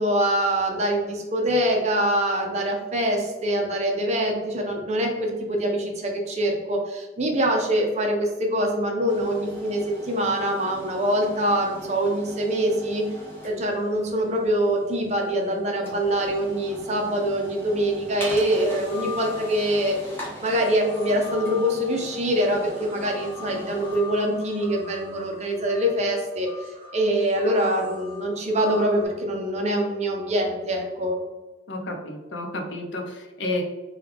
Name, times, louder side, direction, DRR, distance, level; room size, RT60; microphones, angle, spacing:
voice 1, 0.0-13.0 13.4-20.1 20.4-31.2, right 1 dB, 35° right, 1 dB, 0.5 m, -24 dB
sound 1, 9.1-25.9, right 1 dB, 10° left, 0.7 m, -42 dB
sound 2, 18.6-19.9 20.5-29.1, left 5 dB, 45° left, 1.1 m, -42 dB
voice 2, 31.7-33.6, left 1 dB, 75° left, 3 dB, 0.6 m, -31 dB
3.2 x 2.3 x 3.3 m, 1.1 s
head